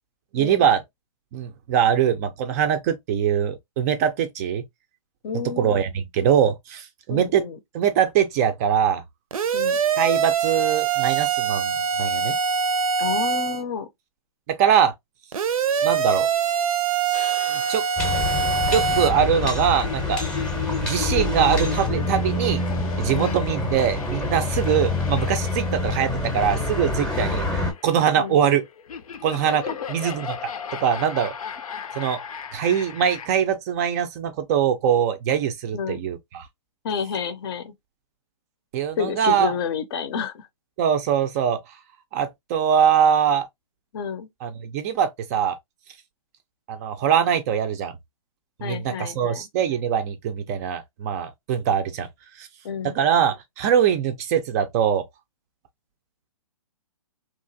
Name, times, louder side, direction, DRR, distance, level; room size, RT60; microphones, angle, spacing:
voice 1, 0.3-0.8 1.3-4.6 5.6-7.4 7.7-9.0 10.0-12.3 14.5-14.9 15.8-16.3 17.5-17.8 18.7-20.2 20.8-22.6 23.0-28.6 29.2-30.4 30.8-31.3 32.0-32.2 32.5-36.5 38.7-39.5 40.8-41.6 42.1-43.5 44.4-45.6 46.7-47.9 48.6-52.1 52.4-52.5 52.8-55.0, right 8 dB, 30° right, 0.4 m, -22 dB
voice 2, 5.2-5.8 7.1-7.6 9.5-9.8 13.0-13.9 23.1-23.3 28.2-28.4 29.7-29.8 35.7-36.0 36.8-37.7 39.0-40.5 43.9-44.3 48.6-49.4 52.6-53.0, left 6 dB, 45° left, 0.6 m, -29 dB
sound 1, 9.3-13.6 15.3-19.1, right 6 dB, 80° right, 0.6 m, -23 dB
sound 2, 17.1-33.3, left 6 dB, 80° left, 0.6 m, -36 dB
sound 3, 18.0-27.7, left 2 dB, 5° left, 0.7 m, -26 dB
2.9 x 2.4 x 2.6 m
hypercardioid pair, 140°, 18 cm